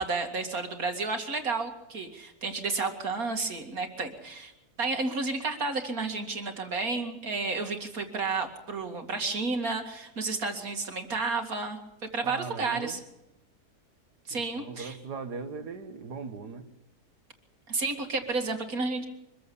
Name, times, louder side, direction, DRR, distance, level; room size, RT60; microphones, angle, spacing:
voice 1, 0.0-4.5 4.8-11.8 12.1-13.0 14.3-15.0 17.7-19.1, right 3 dB, 60° right, 4 dB, 2.7 m, -31 dB
voice 2, 12.2-13.0 14.3-16.7, right 5 dB, 85° right, 9 dB, 2.1 m, -39 dB
24.5 x 15.0 x 7.1 m, 0.92 s
omnidirectional pair, 1.7 m